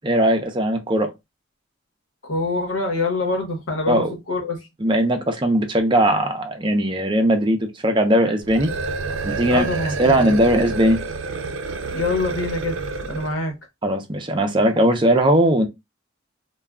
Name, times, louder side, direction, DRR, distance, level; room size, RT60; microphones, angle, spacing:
voice 1, 0.0-1.1 3.9-4.1 4.8-8.7 9.2-9.6 10.0-11.0 13.8-15.7, right 1 dB, 25° right, 0.5 m, -19 dB
voice 2, 2.2-4.6 9.5-10.4 11.9-12.8 13.1-13.5, left 3 dB, 80° left, 1.0 m, -25 dB
sound 1, 8.4-13.4, right 3 dB, 75° right, 0.5 m, -29 dB
2.3 x 2.2 x 3.5 m
head